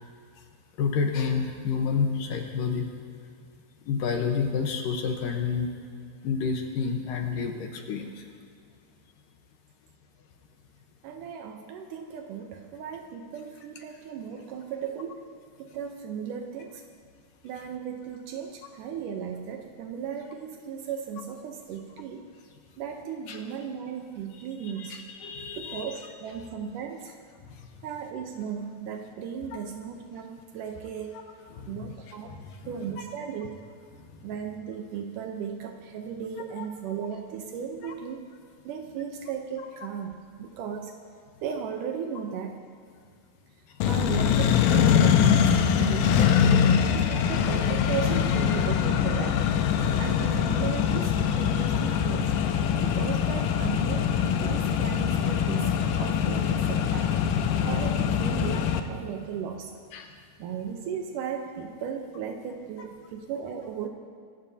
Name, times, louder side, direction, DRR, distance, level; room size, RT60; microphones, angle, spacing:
voice 1, 0.8-2.9 3.9-5.7 6.2-8.3 23.3-23.4 24.3-26.0 27.5-27.7 31.1-31.2 31.5-33.0 34.1-34.2 36.6-36.7 37.8-37.9 43.7-43.8 58.5-58.6 59.9-60.1, left 5 dB, 70° left, 3 dB, 2.3 m, -30 dB
voice 2, 11.0-15.2 15.6-16.8 17.4-22.2 22.8-25.0 25.6-27.2 27.8-31.1 31.7-32.3 32.7-33.6 34.2-38.2 38.7-40.9 41.4-42.7 43.9-49.4 50.0-52.3 52.8-57.1 57.7-59.7 60.4-63.9, right 7 dB, 80° right, 3 dB, 1.8 m, -36 dB
Accelerating revving vroom, 43.8-58.8, left 8 dB, 85° left, 1.9 m, -23 dB
24.0 x 17.0 x 2.8 m, 2.3 s
omnidirectional pair, 4.8 m